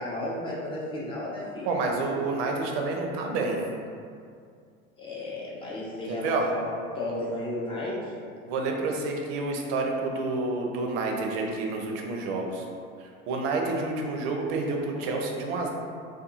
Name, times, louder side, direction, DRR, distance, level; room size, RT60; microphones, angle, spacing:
voice 1, 0.0-1.7 5.0-8.0, left 1 dB, 15° left, -6 dB, 0.4 m, -33 dB
voice 2, 1.6-3.6 6.1-6.5 8.4-12.6 13.0-15.7, right 3 dB, 45° right, 1 dB, 0.5 m, -29 dB
2.7 x 2.3 x 2.4 m, 2.3 s
figure-of-eight pair, 75°, 41 cm